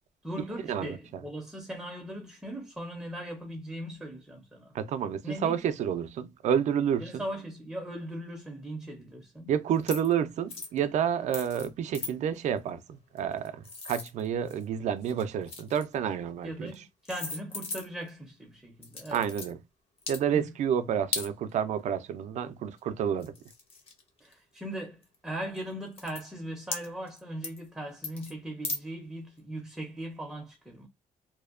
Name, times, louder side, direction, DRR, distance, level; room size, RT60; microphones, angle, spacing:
voice 1, 0.2-4.7 5.2-5.6 7.0-9.5 16.4-19.3 20.3-20.5 24.2-30.9, right 1 dB, 5° right, 0.5 m, -39 dB
voice 2, 4.7-7.2 9.5-16.7 19.1-19.6 20.1-23.4, right 8 dB, 60° right, 0.4 m, -29 dB
sound 1, 9.8-10.1 10.5-10.8 11.3-11.7 11.9-12.1 13.2-14.6 15.0-16.0 16.7-16.8 17.1-18.1 18.8-19.5 20.0-20.2 21.1-21.3 22.8-22.9 23.2-24.3 25.0-25.2 25.6-25.7 25.9-26.2 26.7-27.2 27.4-27.7 28.0-28.3 28.6-28.8, left 3 dB, 45° left, 0.6 m, -37 dB
2.6 x 2.1 x 2.3 m
cardioid pair, 175°, 13 cm